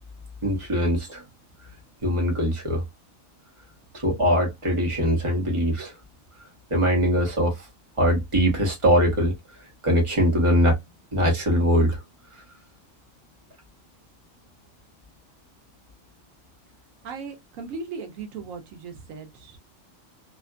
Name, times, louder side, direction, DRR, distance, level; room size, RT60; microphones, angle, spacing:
voice 1, 0.4-1.2 2.0-2.8 3.9-5.9 6.7-7.7 8.0-9.4 9.8-10.8 11.1-12.0, equal, 25° right, 1.1 m, -22 dB
voice 2, 17.0-19.6, right 4 dB, 85° right, 1.1 m, -37 dB
2.8 x 2.5 x 2.2 m
omnidirectional pair, 1.4 m